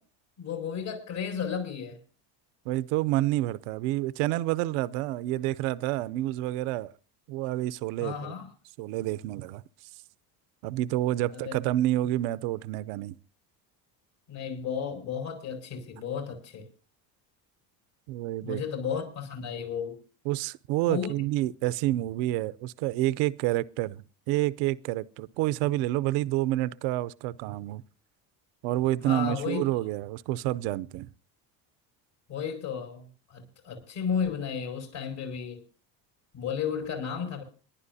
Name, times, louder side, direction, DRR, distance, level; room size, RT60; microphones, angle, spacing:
voice 1, 0.4-2.0 8.0-8.5 11.3-11.6 14.3-16.7 18.4-20.0 20.9-21.1 29.0-29.6 32.3-35.6 36.3-37.4, left 7 dB, 65° left, 5.7 m, -33 dB
voice 2, 2.7-6.9 7.3-8.3 8.8-9.6 10.6-13.2 18.1-18.6 20.3-27.8 28.6-31.1, right 15 dB, 75° right, 0.7 m, -28 dB
28.5 x 11.0 x 2.7 m
supercardioid pair, 85°, 50 cm